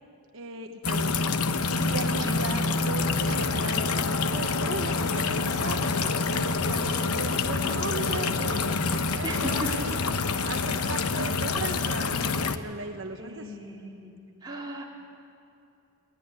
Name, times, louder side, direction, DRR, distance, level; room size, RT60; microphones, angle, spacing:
voice 1, 0.3-1.2 1.8-10.0 10.5-13.6, right 3 dB, 65° right, 4 dB, 1.1 m, -37 dB
sound 1, 0.8-12.6, left 4 dB, 85° left, 0.9 m, -27 dB
Printer, 3.2-11.1, right 3 dB, 35° right, 2.0 m, -46 dB
voice 2, 9.2-9.7 13.2-14.1 14.4-14.8, right 1 dB, 20° right, -3 dB, 3.1 m, -36 dB
21.5 x 19.0 x 9.8 m, 2.6 s
head